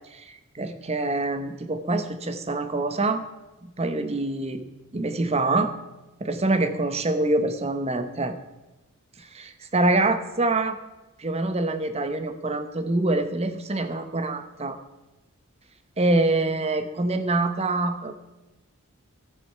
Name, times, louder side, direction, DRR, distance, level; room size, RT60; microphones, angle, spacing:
voice 1, 0.1-3.2 3.6-4.6 4.9-5.7 6.2-8.4 9.2-10.8 11.2-14.8 16.0-18.2, right 2 dB, 30° right, 9 dB, 0.8 m, -25 dB
13.5 x 7.7 x 5.7 m, 1.0 s
head